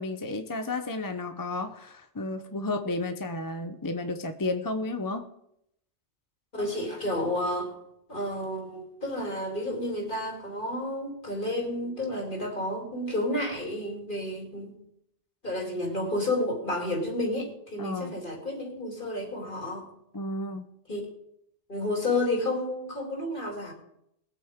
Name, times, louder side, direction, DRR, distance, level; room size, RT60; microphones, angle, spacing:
voice 1, 0.0-5.3 17.8-18.2 20.1-20.6, left 2 dB, 25° left, 7 dB, 0.5 m, -32 dB
voice 2, 6.5-7.8 8.1-14.8 15.4-19.9 20.9-21.0 21.7-23.7, left 1 dB, 45° left, -1 dB, 3.2 m, -31 dB
21.0 x 8.5 x 3.6 m, 0.76 s
omnidirectional pair, 1.2 m